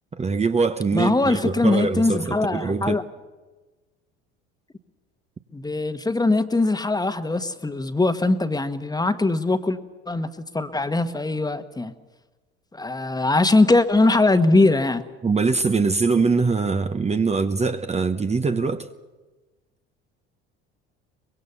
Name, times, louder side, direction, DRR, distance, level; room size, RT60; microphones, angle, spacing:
voice 1, 0.1-3.0 15.2-18.9, right 4 dB, 20° right, 1.0 m, -23 dB
voice 2, 0.9-3.0 5.5-9.8 10.1-10.3 10.5-11.9 12.7-15.0, left 2 dB, 10° left, 1.4 m, -21 dB
24.0 x 21.0 x 7.0 m
hypercardioid pair, 75°, 32 cm